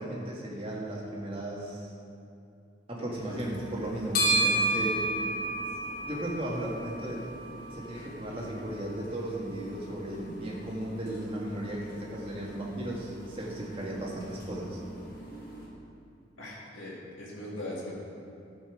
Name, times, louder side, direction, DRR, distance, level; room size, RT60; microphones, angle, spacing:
voice 1, 0.0-1.9 2.9-5.1 6.0-7.2 7.7-14.8, right 1 dB, 30° right, -4 dB, 1.7 m, -35 dB
sound 1, 3.1-15.7, right 2 dB, 50° left, 1.8 m, -35 dB
voice 2, 16.4-17.9, left 1 dB, 85° left, -6 dB, 2.1 m, -40 dB
11.5 x 5.4 x 6.2 m, 2.5 s
head